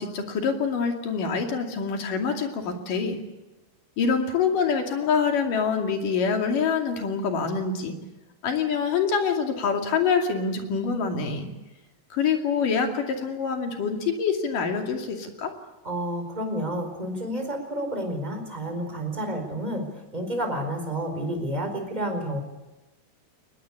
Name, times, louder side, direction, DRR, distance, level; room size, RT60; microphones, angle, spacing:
voice 1, 0.0-3.2 4.0-8.0 8.4-11.5 12.1-15.5, left 5 dB, 65° left, 4 dB, 4.1 m, -25 dB
voice 2, 15.8-22.4, right 1 dB, 10° right, 4 dB, 4.4 m, -30 dB
22.0 x 20.0 x 8.5 m, 1.1 s
omnidirectional pair, 4.3 m